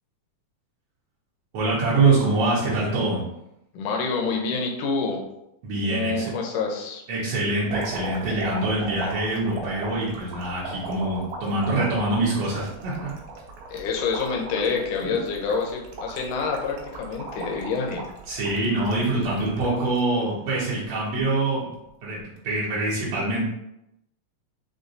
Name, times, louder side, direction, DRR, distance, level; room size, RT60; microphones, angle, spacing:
voice 1, 1.5-3.2 5.6-6.3 7.1-13.1 18.3-21.7 22.0-23.5, right 2 dB, 75° right, -8 dB, 1.5 m, -24 dB
voice 2, 3.7-5.3 5.9-7.0 13.7-18.0, left 4 dB, 80° left, 1 dB, 1.9 m, -27 dB
sound 1, 7.7-20.0 20.5-21.2 22.2-22.4, right 2 dB, 90° right, 2.5 m, -37 dB
6.1 x 2.3 x 2.6 m, 0.85 s
omnidirectional pair, 4.0 m